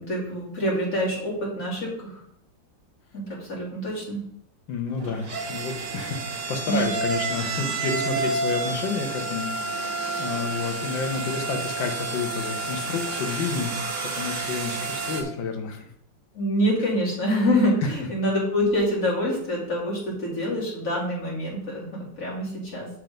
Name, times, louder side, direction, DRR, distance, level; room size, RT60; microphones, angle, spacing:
voice 1, 0.0-2.2 3.1-4.2 6.7-6.9 16.3-22.9, equal, 45° left, -5 dB, 2.9 m, -26 dB
voice 2, 4.7-13.7 14.0-15.9, left 5 dB, 75° left, 5 dB, 1.8 m, -30 dB
sound 1, 4.9-15.2, right 3 dB, 45° right, 1.2 m, -30 dB
6.6 x 4.5 x 5.1 m, 0.69 s
omnidirectional pair, 2.1 m